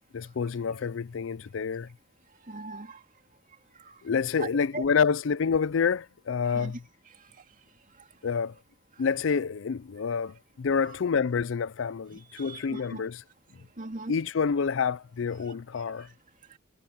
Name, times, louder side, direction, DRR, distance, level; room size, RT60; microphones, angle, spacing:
voice 1, 0.1-1.9 4.0-6.8 8.2-8.5 9.0-13.2 14.1-16.1, left 6 dB, 70° left, 0.5 m, -28 dB
voice 2, 2.4-3.0 3.7-4.0 4.4-4.8 6.5-6.8 7.1-7.4 8.0-8.1 12.3-13.1 13.6-14.1 16.5-16.6, right 2 dB, 40° right, 2.5 m, -40 dB
head